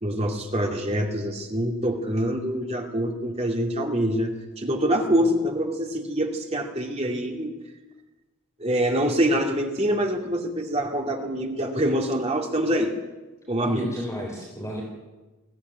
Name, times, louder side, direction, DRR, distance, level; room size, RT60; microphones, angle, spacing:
voice 1, 0.0-7.6 8.6-12.9 13.5-13.9, equal, 30° right, 2 dB, 2.5 m, -25 dB
voice 2, 13.6-14.8, equal, 15° left, -2 dB, 4.0 m, -32 dB
21.5 x 16.0 x 9.4 m, 1.1 s
head